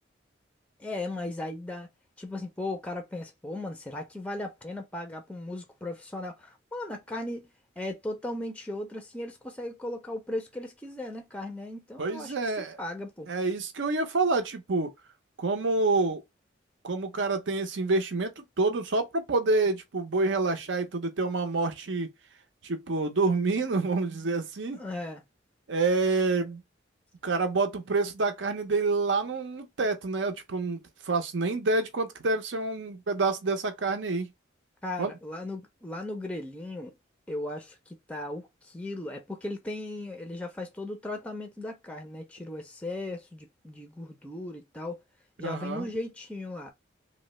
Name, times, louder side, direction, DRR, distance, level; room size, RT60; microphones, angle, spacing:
voice 1, 0.8-1.9 2.2-7.5 7.8-13.3 24.7-25.2 34.8-36.9 37.3-45.0 45.4-46.7, left 1 dB, 5° left, 0.4 m, -37 dB
voice 2, 12.0-12.8 13.3-14.9 15.4-16.2 16.8-22.1 22.6-24.8 25.7-26.6 27.2-30.8 31.0-34.3 35.0-35.1 45.4-45.9, right 3 dB, 70° right, 0.6 m, -27 dB
3.1 x 2.1 x 3.0 m
head